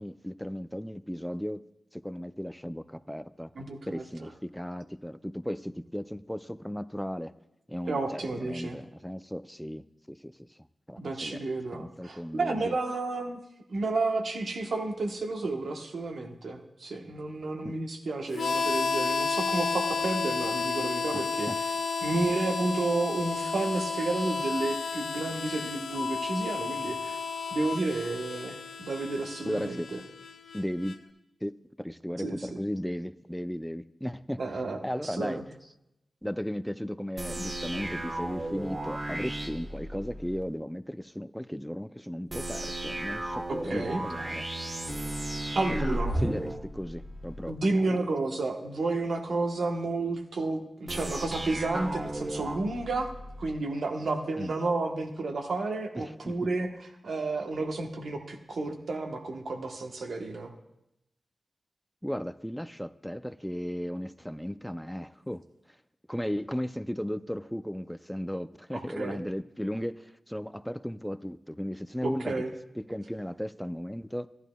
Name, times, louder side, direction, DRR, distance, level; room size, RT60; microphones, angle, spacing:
voice 1, 0.0-1.6 1.9-3.5 3.9-7.3 7.7-10.6 10.9-11.4 11.7-12.8 17.6-17.7 21.1-21.6 29.4-29.9 30.5-31.0 31.4-31.5 31.8-34.4 34.8-35.4 36.2-44.5 45.7-48.1 54.4-54.6 55.9-56.4 62.0-65.8 66.1-72.4 72.8-74.3, equal, 5° left, 0.4 m, -36 dB
voice 2, 3.5-4.0 7.9-8.8 11.0-13.4 13.7-21.5 22.0-27.2 27.5-30.0 32.2-32.6 34.4-35.4 43.5-44.0 44.3-44.4 45.5-46.1 47.5-53.1 53.4-60.5 68.7-69.2 72.0-72.5, right 3 dB, 75° right, 1.1 m, -31 dB
Harmonica, 18.3-31.0, left 4 dB, 85° left, 0.7 m, -32 dB
sound 1, 37.2-40.4 42.3-47.5 50.9-53.5, right 1 dB, 30° right, 1.0 m, -35 dB
15.0 x 11.0 x 2.3 m
cardioid pair, 40°, 0 cm